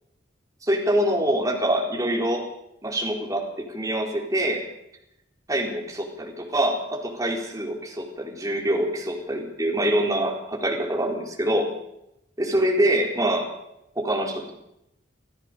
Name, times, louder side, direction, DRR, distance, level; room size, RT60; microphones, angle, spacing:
voice 1, 0.6-2.5 2.8-4.6 5.5-11.7 12.4-13.5 14.0-14.5, right 1 dB, 20° right, 0 dB, 4.1 m, -25 dB
26.0 x 15.0 x 6.9 m, 0.82 s
head